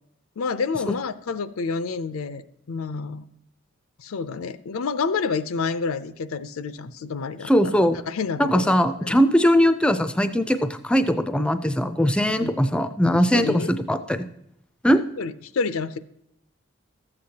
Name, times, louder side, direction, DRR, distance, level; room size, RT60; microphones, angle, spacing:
voice 1, 0.4-2.4 2.7-3.2 4.0-9.2 12.4-12.5 13.3-13.7 15.2-16.0, left 5 dB, 90° left, 14 dB, 0.5 m, -29 dB
voice 2, 7.5-8.0 8.4-14.3 14.8-15.0, equal, 5° left, 10 dB, 0.3 m, -20 dB
13.5 x 7.8 x 2.8 m, 0.76 s
head